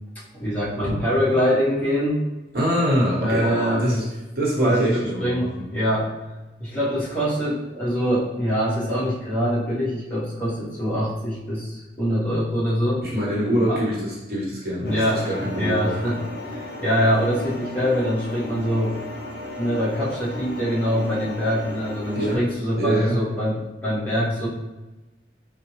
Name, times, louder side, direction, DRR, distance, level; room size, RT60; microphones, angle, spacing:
voice 1, 0.3-2.2 3.2-3.8 4.6-6.1 6.6-13.1 13.7-13.8 14.8-15.2 15.5-18.9 19.6-24.5, equal, 10° left, -10 dB, 1.1 m, -24 dB
voice 2, 2.5-4.0 4.3-5.7 13.0-16.0 22.1-22.5 22.8-23.2, equal, 60° right, -5 dB, 1.0 m, -24 dB
sound 1, 14.8-22.4, left 1 dB, 65° left, 0.6 m, -35 dB
4.1 x 2.1 x 3.0 m, 1.1 s
head